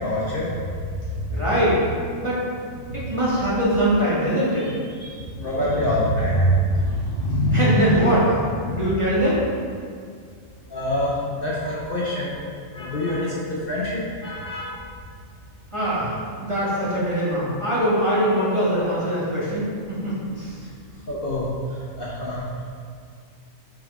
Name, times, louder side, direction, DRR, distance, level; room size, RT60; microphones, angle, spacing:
voice 1, 0.0-0.5 1.1-1.3 2.9-3.0 5.0-8.2 8.6-8.8 10.7-12.3 12.7-14.8 21.1-21.5 22.0-22.4, equal, 45° left, -6 dB, 1.1 m, -24 dB
voice 2, 1.3-1.8 2.2-2.4 2.9-4.7 7.5-8.3 8.7-9.4 15.7-16.1 16.4-20.6, equal, 20° right, -8 dB, 1.7 m, -22 dB
5.7 x 5.0 x 4.8 m, 2.2 s
omnidirectional pair, 1.4 m